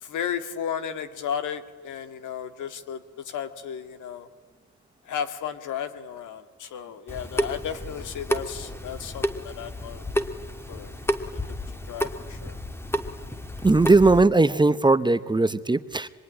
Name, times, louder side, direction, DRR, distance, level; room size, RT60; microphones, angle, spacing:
voice 1, 0.0-4.3 5.1-10.0 10.7-11.0 11.5-11.6 11.9-12.6, left 8 dB, 80° left, 9 dB, 2.0 m, -34 dB
Water tap faucet / Sink (filling or washing) / Drip, 7.1-14.2, equal, 10° left, 1.8 m, -31 dB
voice 2, 13.6-16.1, right 3 dB, 15° right, 13 dB, 0.9 m, -19 dB
25.5 x 23.0 x 10.0 m, 1.4 s
cardioid pair, 90°, 30 cm